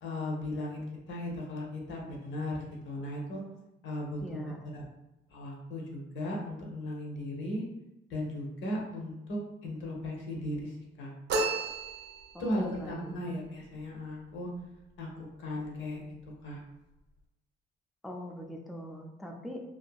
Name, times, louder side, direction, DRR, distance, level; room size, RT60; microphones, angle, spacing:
voice 1, 0.0-3.4 3.8-4.8 5.3-7.6 8.1-11.1 12.4-14.5 15.0-16.1 16.4-16.6, left 1 dB, 75° left, -1 dB, 0.8 m, -37 dB
voice 2, 4.2-4.6 12.3-13.3 18.0-19.7, equal, ahead, 1 dB, 0.3 m, -42 dB
sound 1, 11.3-12.5, right 3 dB, 60° right, 0.5 m, -32 dB
2.7 x 2.6 x 2.3 m, 0.97 s
cardioid pair, 90°, 20 cm